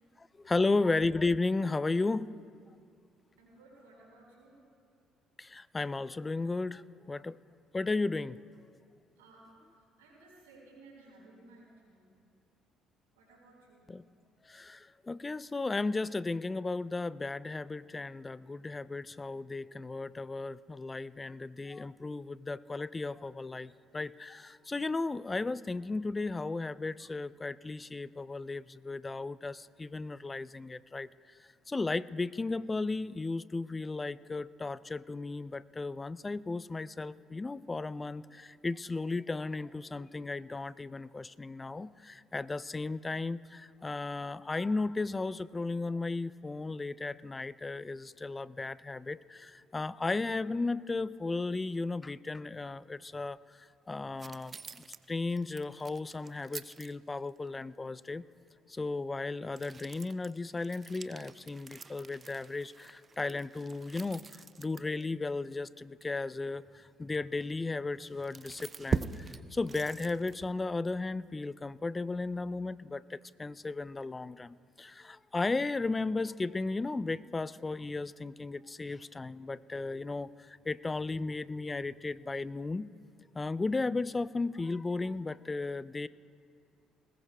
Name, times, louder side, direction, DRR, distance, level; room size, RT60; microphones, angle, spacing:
voice 1, 0.2-2.3 5.4-7.4 7.7-8.4 13.9-14.0 14.5-31.1 31.7-54.6 55.1-58.2 58.7-64.2 64.6-82.9 83.3-86.1, left 3 dB, 25° left, 19 dB, 0.4 m, -35 dB
voice 2, 3.4-4.5 9.2-9.5 10.0-12.1 13.1-13.9, right 2 dB, 85° right, -3 dB, 4.4 m, -57 dB
sound 1, 54.2-57.5 59.6-65.0 65.5-65.6 66.0-66.1 67.6-67.7 68.0-70.7, right 5 dB, 35° right, 0.5 m, -42 dB
21.0 x 19.0 x 2.3 m, 2.3 s
hypercardioid pair, 55°, 0 cm